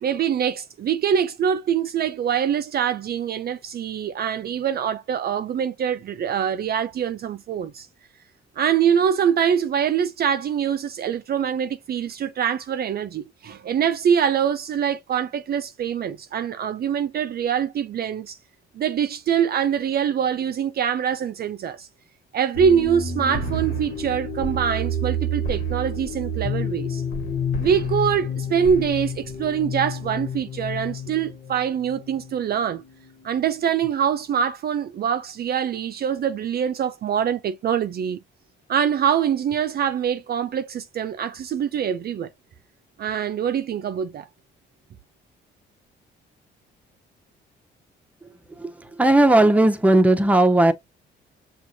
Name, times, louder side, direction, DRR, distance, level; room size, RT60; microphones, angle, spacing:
voice 1, 0.0-7.9 8.6-18.4 18.8-21.9 22.3-27.0 27.6-32.8 33.2-38.2 38.7-42.3 43.0-44.3, right 8 dB, 50° right, 0.4 m, -24 dB
sound 1, 22.5-34.1, equal, 85° left, 1.3 m, -30 dB
voice 2, 49.0-50.7, right 1 dB, 5° right, 0.7 m, -16 dB
6.0 x 2.4 x 2.7 m
cardioid pair, 90°, 20 cm